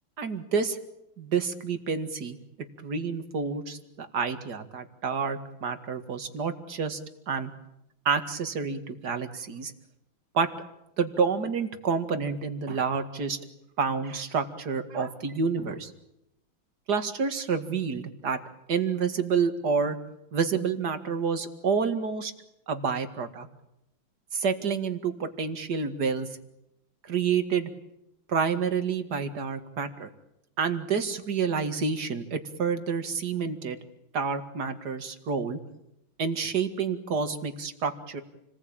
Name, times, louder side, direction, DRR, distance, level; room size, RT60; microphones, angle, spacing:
voice 1, 0.2-0.8 1.2-2.4 2.8-7.0 7.3-7.5 8.1-9.7 10.3-10.5 11.0-13.4 13.8-15.9 16.9-18.4 18.7-20.0 20.3-22.3 22.7-23.5 24.3-26.3 27.0-27.7 28.3-30.1 30.6-33.8 34.1-35.6 36.2-38.2, right 5 dB, 50° right, 8 dB, 2.5 m, -28 dB
29.0 x 20.0 x 8.9 m, 0.85 s
omnidirectional pair, 2.3 m